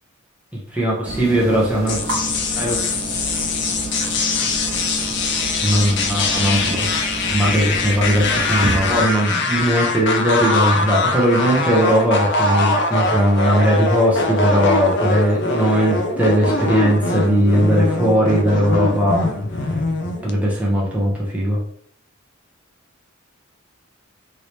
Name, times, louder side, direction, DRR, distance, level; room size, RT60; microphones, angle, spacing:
voice 1, 0.7-2.0 2.6-2.8 5.6-6.9 7.3-19.3 19.6-19.7 20.2-21.6, equal, 5° right, -4 dB, 0.7 m, -19 dB
sound 1, 1.0-9.0, right 2 dB, 75° right, 1.2 m, -29 dB
sound 2, 1.9-20.3, left 3 dB, 55° left, 0.4 m, -22 dB
3.2 x 2.8 x 2.9 m, 0.62 s
head